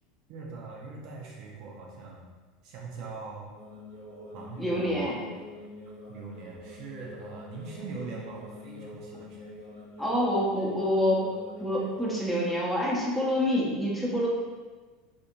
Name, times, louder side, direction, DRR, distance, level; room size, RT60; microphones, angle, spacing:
voice 1, 0.3-2.3 2.6-3.5 4.3-5.2 6.1-9.5, right 4 dB, 50° right, -3 dB, 0.5 m, -42 dB
sound 1, 3.5-12.3, left 2 dB, 80° right, 0.8 m, -45 dB
voice 2, 4.6-5.2 10.0-11.3 11.6-14.3, equal, 5° left, -5 dB, 0.7 m, -27 dB
2.5 x 2.4 x 2.8 m, 1.4 s
figure-of-eight pair, 75°, 0 cm